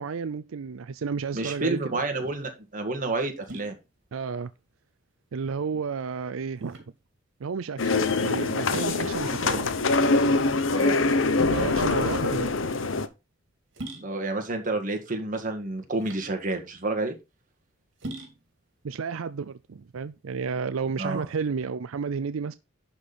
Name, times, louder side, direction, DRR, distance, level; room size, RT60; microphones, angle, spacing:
voice 1, 0.0-2.0 4.1-4.5 5.3-6.8 7.4-9.7 11.5-12.5 18.8-22.6, right 5 dB, 85° right, 0.5 m, -32 dB
voice 2, 1.3-3.8 10.7-11.0 13.9-17.1 21.0-21.3, right 2 dB, 40° right, 1.9 m, -29 dB
sound 1, 1.9-20.4, right 1 dB, 65° right, 2.6 m, -46 dB
sound 2, 7.8-13.1, left 3 dB, 70° left, 0.9 m, -24 dB
11.5 x 4.4 x 5.1 m
head